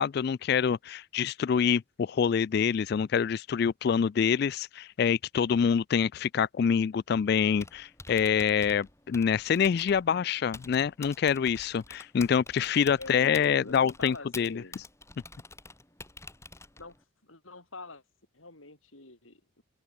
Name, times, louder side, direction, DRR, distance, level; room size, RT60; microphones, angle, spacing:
voice 1, 0.0-14.6, left 7 dB, 50° left, 0.3 m, -26 dB
Typing, 7.4-17.0, left 3 dB, 15° left, 6.5 m, -48 dB
voice 2, 13.0-14.8 16.8-17.0 17.2-18.0 18.3-19.6, left 2 dB, 80° left, 6.4 m, -45 dB
open air
head